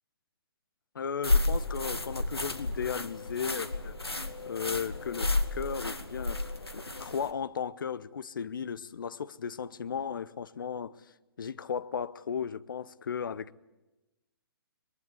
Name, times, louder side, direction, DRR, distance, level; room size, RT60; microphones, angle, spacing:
voice 1, 0.9-4.1 4.5-6.4 6.7-10.9 11.4-13.6, left 7 dB, 55° left, 1.0 m, -35 dB
sound 1, 1.2-7.3, left 2 dB, 85° left, 2.2 m, -32 dB
24.0 x 22.5 x 8.0 m
figure-of-eight pair, 130°, 13 cm